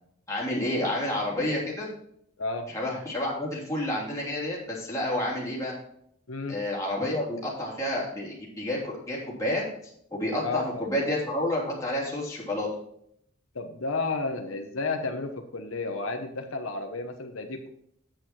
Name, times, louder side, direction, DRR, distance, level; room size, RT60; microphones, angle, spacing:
voice 1, 0.3-1.9 2.7-5.7 6.5-9.6 10.1-12.7, left 1 dB, 15° left, -4 dB, 3.1 m, -29 dB
voice 2, 2.4-2.7 6.3-6.6 10.4-10.9 13.5-17.7, left 3 dB, 85° left, 5 dB, 1.1 m, -32 dB
8.7 x 7.8 x 4.3 m, 0.69 s
head